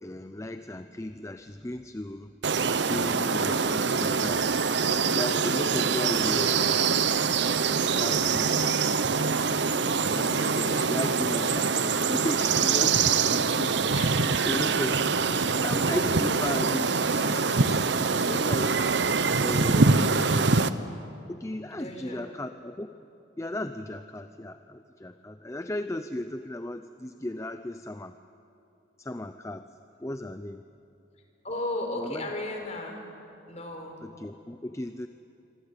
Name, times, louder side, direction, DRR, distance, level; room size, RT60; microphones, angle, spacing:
voice 1, 0.0-2.3 2.9-4.6 5.1-6.8 8.0-8.7 9.9-13.8 14.2-18.7 19.4-20.2 21.3-22.9 23.4-28.2 29.0-29.7 30.0-30.6 32.0-32.3 34.0-35.1, left 1 dB, 15° left, 9 dB, 0.5 m, -35 dB
sound 1, 2.4-20.7, right 5 dB, 60° right, 0.8 m, -24 dB
voice 2, 21.7-22.2 31.4-33.0 33.5-34.0, left 1 dB, 35° left, 3 dB, 4.2 m, -34 dB
27.0 x 24.0 x 8.4 m, 2.9 s
head